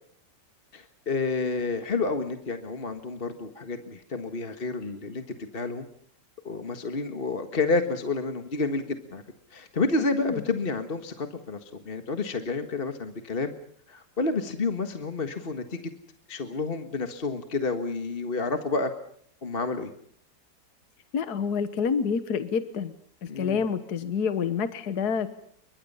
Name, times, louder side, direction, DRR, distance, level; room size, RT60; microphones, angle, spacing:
voice 1, 0.7-5.8 6.4-9.2 9.5-13.5 13.9-15.8 16.3-18.9 19.4-19.9 23.3-23.6, left 3 dB, 30° left, 7 dB, 1.7 m, -30 dB
voice 2, 21.1-22.9 23.2-25.3, left 6 dB, 60° left, 11 dB, 1.7 m, -28 dB
29.0 x 24.5 x 5.6 m, 0.62 s
omnidirectional pair, 2.0 m